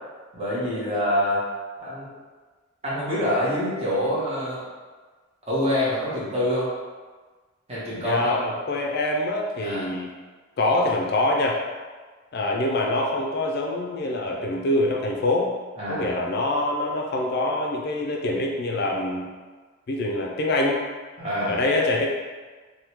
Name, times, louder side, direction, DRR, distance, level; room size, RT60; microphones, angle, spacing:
voice 1, 0.3-1.4 1.8-2.1 2.8-4.6 5.4-6.7 7.7-8.4 9.6-9.9 15.8-16.1 21.2-21.6, left 1 dB, 30° right, -9 dB, 1.1 m, -26 dB
voice 2, 8.0-10.1 10.6-11.6 12.3-15.5 15.9-19.3 19.9-20.8 21.5-22.1, left 2 dB, 55° left, -1 dB, 0.4 m, -25 dB
3.5 x 2.2 x 2.9 m, 1.4 s
head